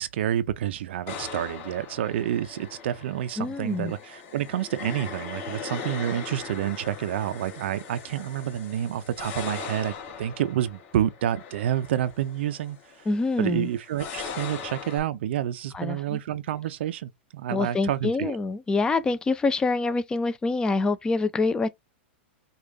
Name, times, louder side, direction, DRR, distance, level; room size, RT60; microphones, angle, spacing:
voice 1, 0.0-13.1 13.4-18.4, right 11 dB, 70° right, 0.5 m, -29 dB
sound 1, 1.1-15.0, left 6 dB, 40° left, 1.7 m, -40 dB
voice 2, 3.4-3.9 13.1-13.7 15.7-16.2 17.5-21.7, left 3 dB, 10° left, 0.5 m, -26 dB
5.1 x 2.4 x 3.9 m
hypercardioid pair, 140°, 6 cm